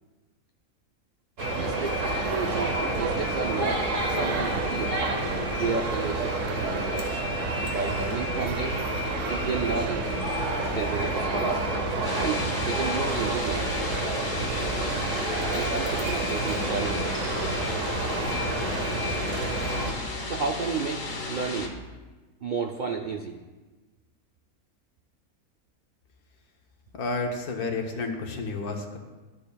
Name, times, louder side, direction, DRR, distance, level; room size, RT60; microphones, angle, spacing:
sound 1, 1.4-19.9, right 2 dB, 60° right, 1.2 m, -28 dB
voice 1, 1.5-5.0 5.5-7.2 7.6-8.8 9.2-10.1 10.6-11.6 12.2-13.7 15.5-17.2 20.2-21.8 22.4-23.4, right 5 dB, 90° right, 2 dB, 0.4 m, -32 dB
sound 2, 12.0-21.7, left 2 dB, 65° left, 1.5 m, -34 dB
voice 2, 26.9-29.0, left 3 dB, 85° left, 3 dB, 1.5 m, -31 dB
13.0 x 6.7 x 2.3 m, 1.2 s
omnidirectional pair, 1.6 m